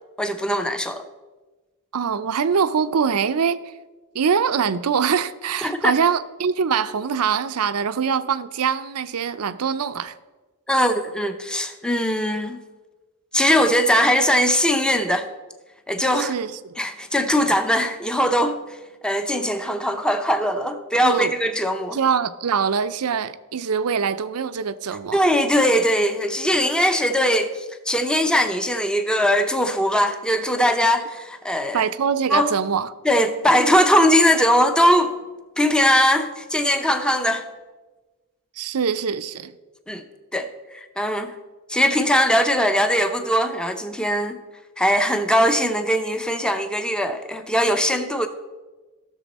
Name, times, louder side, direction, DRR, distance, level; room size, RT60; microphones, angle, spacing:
voice 1, 0.2-1.0 5.6-5.9 10.7-12.6 13.3-15.3 15.9-16.3 16.8-18.6 19.0-22.0 25.1-31.9 32.3-32.5 33.0-35.2 35.6-37.5 39.9-40.0 40.3-40.5 41.0-41.3 41.7-44.4 44.8-48.3, equal, 5° left, 0.6 m, -20 dB
voice 2, 1.9-3.6 4.1-10.1 16.2-16.5 21.0-21.3 21.9-25.2 31.7-32.9 38.6-39.5, right 6 dB, 75° right, 0.5 m, -23 dB
14.5 x 6.8 x 4.2 m
head